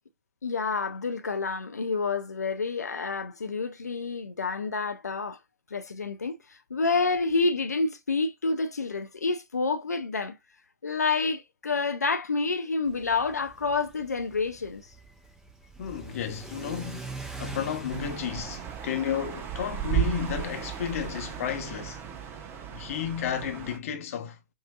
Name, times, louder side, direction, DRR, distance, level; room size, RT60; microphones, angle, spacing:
voice 1, 0.4-5.4 5.7-10.4 10.8-14.9, left 4 dB, 85° left, 0.5 m, -28 dB
Car / Accelerating revving vroom, 12.9-22.3, right 3 dB, 5° right, 0.9 m, -44 dB
voice 2, 15.8-22.0 22.7-24.4, left 9 dB, 60° left, 0.9 m, -32 dB
sound 1, 17.9-23.8, right 11 dB, 30° right, 0.9 m, -34 dB
5.3 x 2.6 x 2.3 m
figure-of-eight pair, 105°, 9 cm